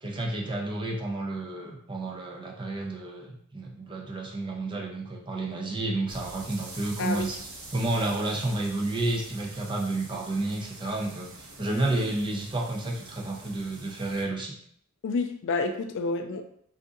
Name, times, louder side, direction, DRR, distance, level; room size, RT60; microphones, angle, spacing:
voice 1, 0.0-7.4 7.7-11.3 11.6-14.6, right 2 dB, 20° right, 0 dB, 0.5 m, -30 dB
sound 1, 6.1-14.2, right 2 dB, 90° right, 0.7 m, -45 dB
voice 2, 7.0-7.3 15.0-16.5, left 3 dB, 60° left, 6 dB, 0.3 m, -29 dB
2.6 x 2.4 x 3.7 m, 0.65 s
head